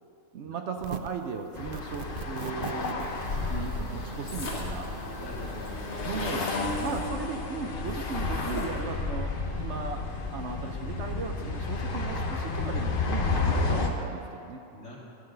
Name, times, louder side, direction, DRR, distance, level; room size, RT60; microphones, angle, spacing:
voice 1, 0.3-3.1 3.5-4.9 6.0-9.3 9.6-10.0 10.3-14.6, right 5 dB, 60° right, 4 dB, 0.9 m, -37 dB
sound 1, 0.8-1.2 1.7-7.0, right 8 dB, 75° right, 0.5 m, -42 dB
sound 2, 1.5-13.9, left 3 dB, 45° left, 0.9 m, -31 dB
voice 2, 3.0-3.8 5.2-5.6 14.0-14.1 14.7-15.0, left 1 dB, 60° left, -3 dB, 2.1 m, -45 dB
sound 3, 4.3-4.8 5.2-5.3 5.5-6.7 7.9-8.9, left 1 dB, 80° left, 2.1 m, -38 dB
12.0 x 5.8 x 6.6 m, 2.6 s
omnidirectional pair, 1.5 m